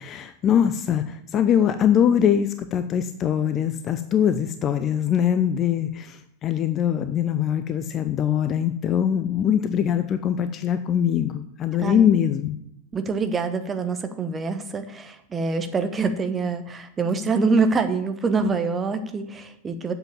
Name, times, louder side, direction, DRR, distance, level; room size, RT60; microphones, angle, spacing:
voice 1, 0.0-12.5, left 9 dB, 30° left, 10 dB, 0.6 m, -22 dB
voice 2, 11.8-12.1 12.9-19.9, right 4 dB, 20° right, 8 dB, 1.0 m, -25 dB
7.8 x 6.9 x 7.3 m, 0.77 s
figure-of-eight pair, 90°, 0 cm